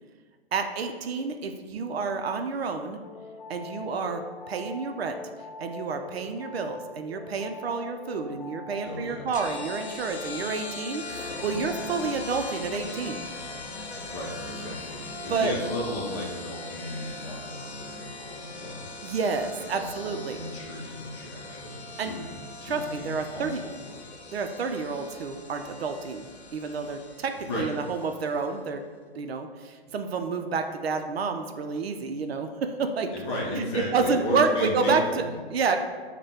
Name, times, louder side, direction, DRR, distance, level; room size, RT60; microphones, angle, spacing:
voice 1, 0.5-3.0 3.5-4.2 4.5-5.2 5.6-13.2 15.3-15.5 19.0-20.4 22.0-22.1 22.7-23.6 24.3-28.8 29.1-33.1 33.6-35.2 35.5-35.8, right 4 dB, 70° right, 6 dB, 0.5 m, -29 dB
sound 1, 3.0-12.2, left 3 dB, 45° left, 0.4 m, -43 dB
voice 2, 8.8-9.3 14.1-18.9 19.7-24.0 27.5-27.7 33.1-35.3, left 1 dB, 25° left, -3 dB, 0.7 m, -35 dB
sound 2, 9.3-28.5, left 3 dB, 80° left, 0.8 m, -40 dB
5.3 x 2.2 x 3.4 m, 1.5 s
hypercardioid pair, 150°, 32 cm